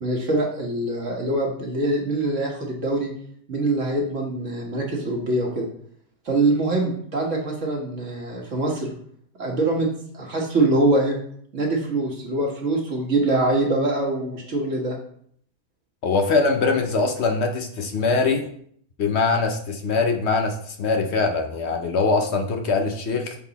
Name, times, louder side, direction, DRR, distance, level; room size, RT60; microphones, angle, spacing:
voice 1, 0.0-3.1 3.5-5.7 6.3-8.9 9.4-9.9 10.1-11.2 11.5-15.0, right 2 dB, 50° right, 0 dB, 1.7 m, -24 dB
voice 2, 16.0-18.5 19.0-23.4, left 4 dB, 55° left, 5 dB, 0.8 m, -22 dB
7.0 x 4.1 x 4.0 m, 0.63 s
omnidirectional pair, 1.8 m